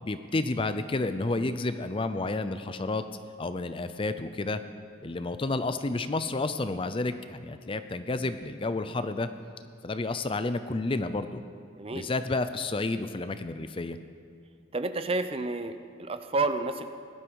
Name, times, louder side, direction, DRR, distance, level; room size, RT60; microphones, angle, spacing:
voice 1, 0.0-3.1 3.4-4.6 5.0-9.3 9.8-11.4 11.9-14.0, left 2 dB, 25° left, 11 dB, 0.5 m, -30 dB
voice 2, 11.8-12.1 14.7-16.9, right 3 dB, 30° right, 9 dB, 0.6 m, -30 dB
18.0 x 12.0 x 4.8 m, 2.3 s
head